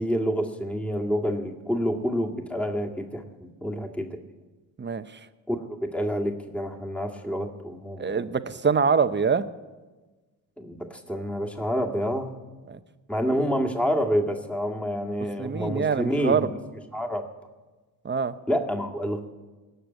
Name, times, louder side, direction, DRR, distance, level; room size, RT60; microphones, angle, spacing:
voice 1, 0.0-4.2 5.5-8.3 10.6-12.3 13.1-16.5 16.9-17.3 18.5-19.2, equal, 5° left, 1 dB, 2.0 m, -28 dB
voice 2, 8.0-9.4 12.7-12.8 15.4-16.5 18.0-18.3, right 6 dB, 25° right, 11 dB, 0.9 m, -24 dB
18.0 x 6.8 x 9.2 m, 1.3 s
supercardioid pair, 65°, 42 cm